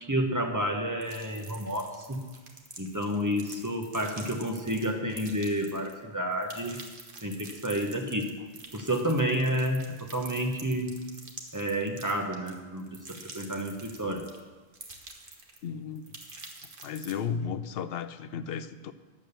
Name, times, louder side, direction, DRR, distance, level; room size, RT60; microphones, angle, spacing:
voice 1, 0.0-2.2 2.8-6.8 7.2-8.4 8.7-11.0 11.5-14.3, equal, 15° right, 2 dB, 1.2 m, -30 dB
sound 1, 1.0-6.0 6.3-14.4 14.7-15.7 16.0-17.1, right 3 dB, 55° right, 1.5 m, -47 dB
voice 2, 15.6-16.2 16.8-18.9, left 7 dB, 70° left, 12 dB, 0.8 m, -34 dB
10.5 x 7.7 x 6.8 m, 1.3 s
omnidirectional pair, 1.1 m